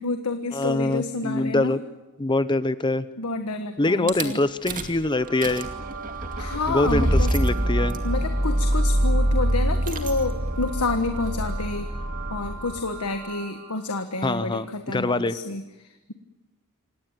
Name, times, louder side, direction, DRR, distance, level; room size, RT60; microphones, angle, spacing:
voice 1, 0.0-1.8 3.2-4.4 6.4-7.3 8.0-11.9 12.3-16.1, left 3 dB, 90° left, 7 dB, 1.5 m, -29 dB
voice 2, 0.5-1.8 2.2-3.1 3.8-5.7 6.7-7.9 14.2-15.4, left 2 dB, 20° left, 14 dB, 0.7 m, -24 dB
Rattle / Car / Engine starting, 4.1-4.2 4.7-5.0 5.3-13.0, right 1 dB, 35° right, 2.4 m, -25 dB
sound 1, 5.1-13.9, right 5 dB, 80° right, 4.4 m, -39 dB
26.5 x 18.5 x 9.1 m, 1.1 s
head